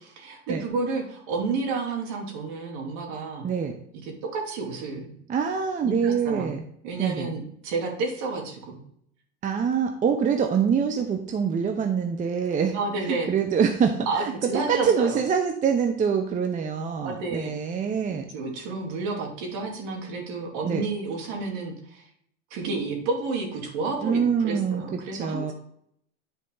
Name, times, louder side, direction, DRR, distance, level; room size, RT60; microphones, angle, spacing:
voice 1, 0.0-3.5 4.0-5.2 5.8-6.5 6.8-8.8 12.7-13.3 14.1-15.2 17.0-17.5 18.1-22.0 22.5-25.5, right 3 dB, 55° right, 1 dB, 2.6 m, -31 dB
voice 2, 3.4-3.8 5.3-6.7 7.0-7.4 9.4-12.7 13.1-18.3 20.6-20.8 24.0-24.8 25.1-25.5, right 6 dB, 20° right, 5 dB, 0.7 m, -25 dB
9.6 x 4.4 x 3.7 m, 0.68 s
hypercardioid pair, 105°, 34 cm